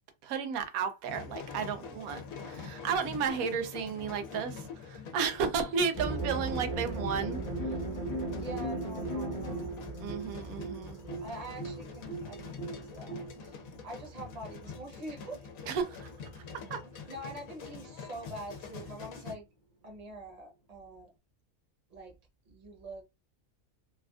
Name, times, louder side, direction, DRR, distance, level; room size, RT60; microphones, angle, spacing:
voice 1, 0.2-7.4 10.0-11.0 15.7-16.4 16.7-16.8, right 6 dB, 90° right, 1.0 m, -33 dB
sound 1, 1.0-19.3, left 5 dB, 85° left, 1.1 m, -45 dB
sound 2, 5.9-14.8, right 2 dB, 20° left, 0.6 m, -37 dB
voice 2, 8.3-9.8 11.2-13.6 13.8-15.5 17.1-19.5 19.8-21.1 21.9-22.1 22.5-23.0, right 1 dB, 35° right, 0.9 m, -45 dB
3.2 x 2.4 x 2.3 m
omnidirectional pair, 1.4 m